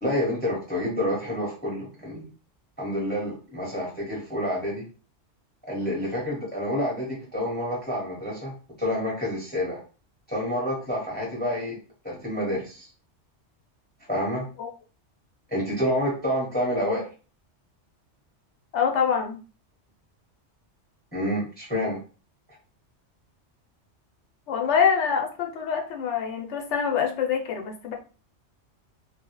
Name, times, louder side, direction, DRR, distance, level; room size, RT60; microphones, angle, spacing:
voice 1, 0.0-2.3 2.8-4.9 5.7-8.5 8.8-9.8 10.3-11.8 12.0-12.9 14.1-14.5 15.5-17.0 21.1-22.0, equal, 10° left, -4 dB, 0.8 m, -28 dB
voice 2, 18.7-19.4 24.5-27.9, left 7 dB, 80° left, 2 dB, 0.9 m, -25 dB
2.2 x 2.1 x 2.9 m, 0.36 s
omnidirectional pair, 1.2 m